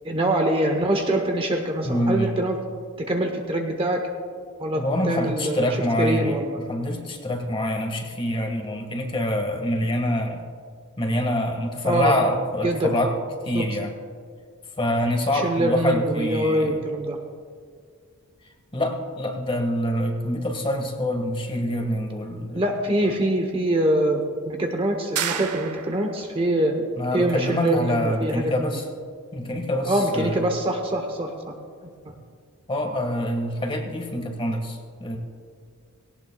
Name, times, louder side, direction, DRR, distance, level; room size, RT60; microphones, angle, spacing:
voice 1, 0.0-2.6 3.0-4.0 4.6-6.6 11.8-12.1 12.6-13.0 13.5-13.7 15.3-17.2 22.5-26.7 27.1-28.8 29.8-31.5 31.8-32.1, right 1 dB, 25° right, 4 dB, 0.9 m, -24 dB
voice 2, 1.8-2.3 4.7-6.4 6.7-10.4 11.0-13.1 13.4-13.9 14.8-16.8 18.7-22.6 26.9-28.8 29.3-30.5 32.1-32.2 32.7-35.2, left 1 dB, 25° left, 4 dB, 1.6 m, -25 dB
sound 1, 25.2-26.2, right 8 dB, 75° right, 0.9 m, -30 dB
18.5 x 18.0 x 2.3 m, 2.1 s
head